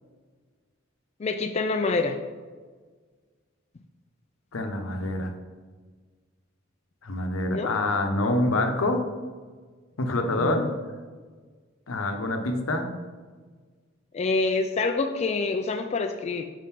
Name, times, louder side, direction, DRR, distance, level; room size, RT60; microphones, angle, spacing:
voice 1, 1.2-2.2 7.5-7.7 10.4-10.7 14.1-16.4, left 3 dB, 30° left, 5 dB, 0.3 m, -26 dB
voice 2, 4.5-5.3 7.0-9.0 10.0-10.7 11.9-12.9, left 2 dB, 90° left, 5 dB, 0.8 m, -26 dB
5.0 x 3.7 x 5.8 m, 1.5 s
head